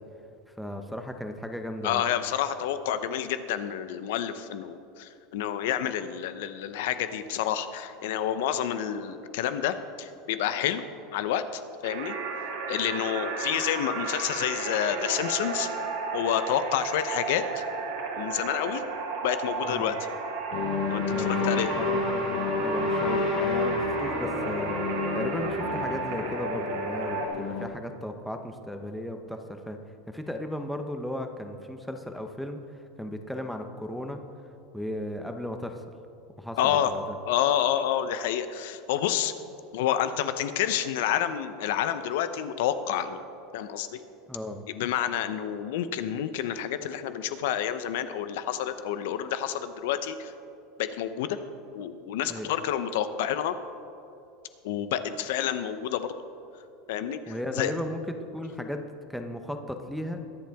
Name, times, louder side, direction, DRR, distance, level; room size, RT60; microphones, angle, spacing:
voice 1, 0.6-2.1 19.6-19.9 21.1-22.3 22.6-24.8 25.1-29.8 30.1-32.6 33.0-34.2 34.7-35.8 36.4-37.2 44.3-44.6 52.3-52.5 57.3-58.0 58.3-58.8 59.1-60.2, left 1 dB, ahead, 5 dB, 0.7 m, -35 dB
voice 2, 1.8-10.8 11.1-12.1 12.7-15.7 16.1-17.6 18.2-18.8 19.2-20.0 20.9-21.7 36.6-36.9 37.2-39.3 39.7-43.2 43.5-44.0 44.7-50.3 50.8-51.4 51.7-53.5 54.6-56.1 56.9-57.7, left 10 dB, 70° left, 11 dB, 0.7 m, -29 dB
sound 1, 11.8-27.3, right 4 dB, 70° right, 2.5 m, -33 dB
sound 2, 20.5-27.7, left 3 dB, 45° left, 1.2 m, -29 dB
22.5 x 7.7 x 3.5 m, 2.7 s
supercardioid pair, 160°, 0 cm